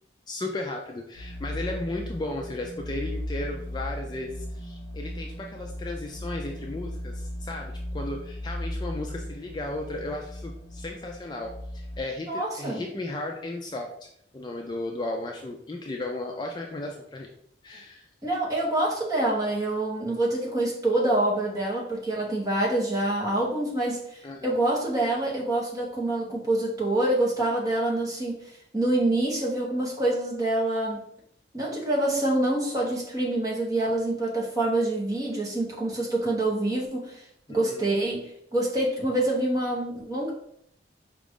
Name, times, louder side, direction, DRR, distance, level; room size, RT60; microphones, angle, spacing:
voice 1, 0.3-14.1 14.3-17.3 17.6-18.1 24.2-24.6 37.5-37.9, left 2 dB, 25° left, 1 dB, 0.3 m, -35 dB
sound 1, 1.1-12.0, equal, 70° right, 1.0 m, -36 dB
voice 2, 12.3-12.8 18.2-28.3 28.7-31.0 31.5-37.2 37.5-40.3, right 1 dB, 20° right, -4 dB, 1.0 m, -26 dB
4.9 x 2.4 x 3.6 m, 0.70 s
head